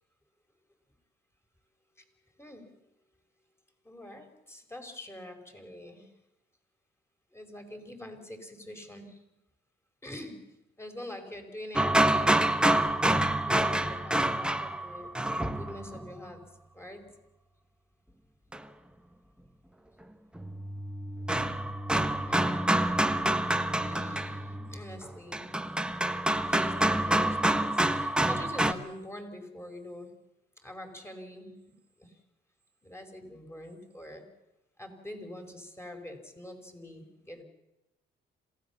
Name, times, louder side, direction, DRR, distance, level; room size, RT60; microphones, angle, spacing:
voice 1, 2.4-2.7 3.8-6.1 7.3-9.2 10.0-10.5 10.8-12.7 13.3-15.2 15.5-16.4 16.7-17.1 22.2-22.8 23.8-25.5 26.3-30.2 30.6-31.7 32.0-32.1 32.8-34.2 34.8-37.4, left 1 dB, 10° left, 4 dB, 5.1 m, -45 dB
sound 1, 11.7-16.1 18.5-18.6 20.4-28.7, right 1 dB, 5° right, 1.3 m, -27 dB
27.0 x 17.0 x 7.2 m, 0.95 s
cardioid pair, 90°, 20 cm